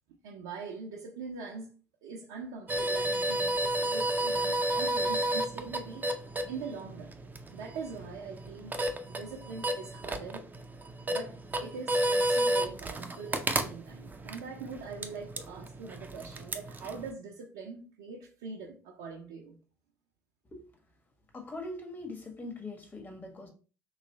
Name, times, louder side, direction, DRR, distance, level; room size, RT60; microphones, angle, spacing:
voice 1, 0.2-1.7 2.0-6.1 6.5-7.2 7.5-8.8 9.1-10.4 11.1-19.6, right 4 dB, 75° right, 0.8 m, -42 dB
sound 1, 2.7-17.1, right 1 dB, 20° right, 0.7 m, -32 dB
voice 2, 21.3-23.5, left 2 dB, 25° left, 1.5 m, -41 dB
3.2 x 3.1 x 4.0 m
hypercardioid pair, 55°, 8 cm